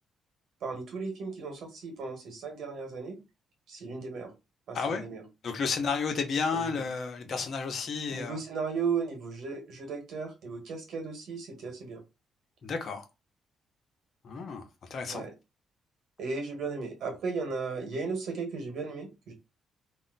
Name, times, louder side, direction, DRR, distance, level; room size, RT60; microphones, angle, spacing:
voice 1, 0.6-3.2 3.7-4.3 4.7-5.2 6.5-6.8 8.1-12.0 15.1-15.3 16.2-19.3, right 4 dB, 70° right, 1.4 m, -35 dB
voice 2, 5.4-8.4 12.6-13.1 14.2-14.6 14.9-15.2, left 5 dB, 55° left, 0.8 m, -31 dB
2.8 x 2.1 x 4.0 m
cardioid pair, 90°, 0 cm